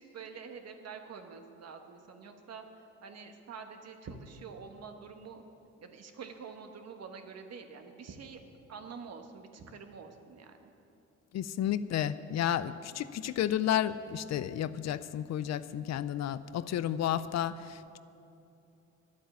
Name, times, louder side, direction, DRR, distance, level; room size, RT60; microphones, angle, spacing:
voice 1, 0.0-2.6 3.0-5.4 5.8-8.4 8.7-10.7, right 5 dB, 55° right, 5 dB, 1.4 m, -47 dB
voice 2, 11.3-18.0, left 10 dB, 60° left, 15 dB, 0.5 m, -32 dB
11.0 x 8.4 x 9.3 m, 2.8 s
cardioid pair, 90°, 30 cm